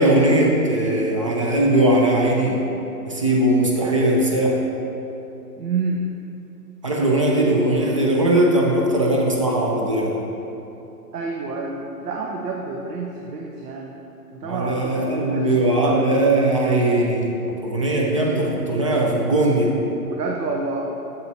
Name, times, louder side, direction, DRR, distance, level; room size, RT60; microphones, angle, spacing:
voice 1, 0.0-2.7 3.1-4.6 6.8-10.2 14.4-19.7, right 1 dB, 25° right, -2 dB, 0.4 m, -19 dB
voice 2, 5.6-6.1 11.1-14.0 14.3-16.0 20.0-20.9, right 3 dB, 75° right, 0 dB, 0.9 m, -28 dB
7.6 x 7.3 x 2.7 m, 2.9 s
hypercardioid pair, 130°, 47 cm